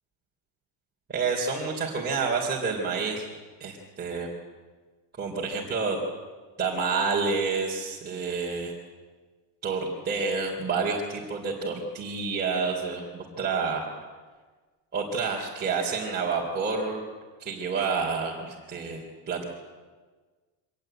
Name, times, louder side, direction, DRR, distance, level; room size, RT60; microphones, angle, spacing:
voice 1, 1.1-3.3 3.6-4.3 5.2-6.0 6.6-8.7 9.6-13.9 14.9-17.0 17.4-19.4, right 4 dB, 20° right, -3 dB, 3.5 m, -29 dB
25.0 x 18.5 x 9.0 m, 1.4 s
cardioid pair, 150°, 47 cm